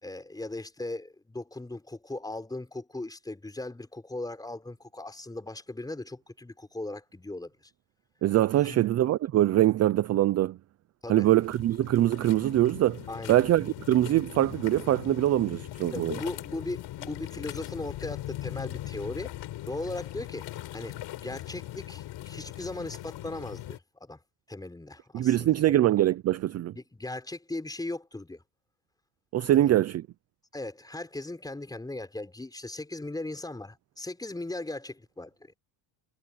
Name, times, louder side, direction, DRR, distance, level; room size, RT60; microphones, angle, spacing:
voice 1, 0.0-7.5 8.6-8.9 11.0-11.3 13.1-13.4 15.9-19.3 19.7-24.2 24.5-25.7 26.7-28.4 29.5-29.8 30.5-35.6, left 2 dB, 10° left, 5.4 m, -38 dB
voice 2, 8.2-10.6 11.1-16.2 25.1-26.7 29.3-30.0, right 13 dB, 35° right, 0.4 m, -23 dB
sound 1, 11.2-23.8, left 14 dB, 60° left, 5.3 m, -40 dB
cardioid pair, 160°, 48 cm